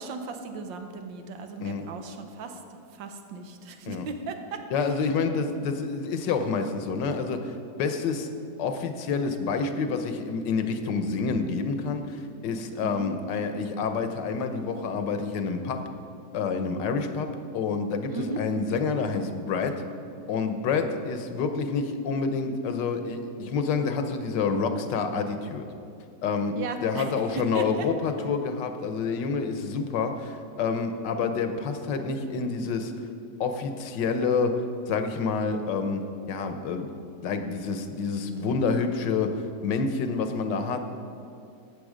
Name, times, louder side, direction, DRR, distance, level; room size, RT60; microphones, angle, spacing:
voice 1, 0.0-2.6 2.9-4.6 12.8-13.1 18.1-18.4 26.6-27.9, right 4 dB, 90° right, 6 dB, 1.6 m, -36 dB
voice 2, 4.7-8.3 8.6-15.9 16.3-19.8 20.3-25.7 26.2-32.9 33.4-36.9 37.2-40.9, left 4 dB, 75° left, 7 dB, 1.5 m, -28 dB
13.5 x 8.7 x 5.0 m, 2.5 s
omnidirectional pair, 1.9 m